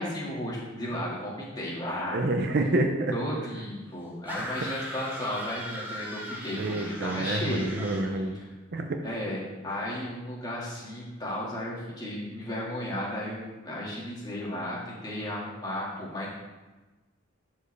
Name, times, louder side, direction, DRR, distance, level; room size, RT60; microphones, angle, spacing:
voice 1, 0.0-2.3 3.1-8.5 9.0-16.3, left 1 dB, 20° left, -5 dB, 1.8 m, -34 dB
voice 2, 2.1-3.1 6.6-8.4 8.7-9.0, right 2 dB, 50° right, 5 dB, 0.6 m, -28 dB
sound 1, 4.3-8.1, equal, 10° right, 0.9 m, -39 dB
11.5 x 4.5 x 3.3 m, 1.2 s
head